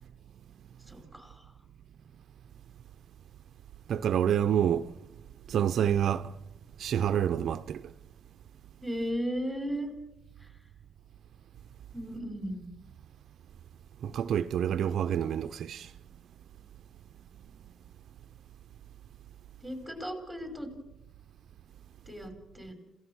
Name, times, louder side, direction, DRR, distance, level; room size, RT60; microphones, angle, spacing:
voice 1, 0.9-1.5 8.8-9.9 10.4-10.5 11.9-12.8 19.6-20.7 22.1-22.7, equal, ahead, 5.0 m, -36 dB
voice 2, 3.9-4.9 5.5-6.3 6.8-7.8 14.0-15.9, right 9 dB, 65° right, 0.6 m, -27 dB
27.5 x 16.5 x 6.3 m
cardioid pair, 90°, 0 cm